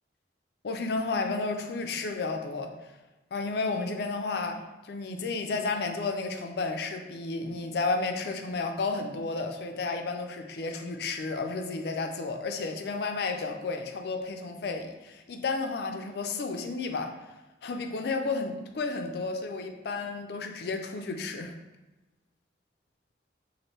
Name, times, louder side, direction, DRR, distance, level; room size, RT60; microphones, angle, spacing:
voice 1, 0.6-2.7 3.3-4.6 4.8-17.1 17.6-21.5, left 3 dB, 60° left, 5 dB, 0.4 m, -32 dB
3.1 x 2.6 x 4.3 m, 1.1 s
head